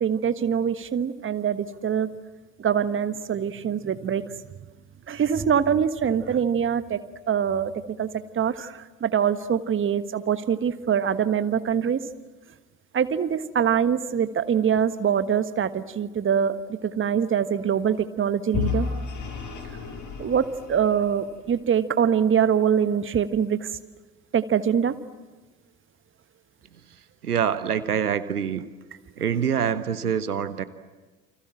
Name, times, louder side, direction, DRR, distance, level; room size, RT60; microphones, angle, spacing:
voice 1, 0.0-2.1 2.6-4.2 5.1-7.0 7.3-7.7 8.0-8.1 8.3-12.0 12.9-16.6 16.8-18.9 20.2-23.7 24.3-24.9, right 8 dB, 25° right, 11 dB, 1.4 m, -24 dB
Vehicle / Engine, 18.5-21.5, left 6 dB, 40° left, 5.5 m, -31 dB
voice 2, 27.2-28.6 29.2-30.6, right 8 dB, 80° right, 13 dB, 1.2 m, -25 dB
29.5 x 25.5 x 7.6 m, 1.2 s
figure-of-eight pair, 65°, 45 cm